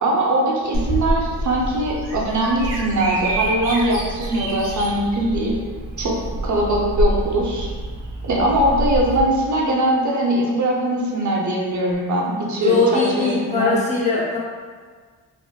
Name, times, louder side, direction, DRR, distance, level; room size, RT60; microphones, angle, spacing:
voice 1, 0.0-5.5 6.0-6.2 6.4-7.7 8.2-13.7, right 1 dB, 45° right, -2 dB, 0.7 m, -21 dB
Bird vocalization bird call bird song, 0.7-9.2, right 1 dB, 85° right, 0.7 m, -26 dB
voice 2, 12.6-14.4, left 3 dB, 15° left, -6 dB, 0.7 m, -20 dB
3.5 x 2.0 x 2.2 m, 1.5 s
cardioid pair, 85°, 41 cm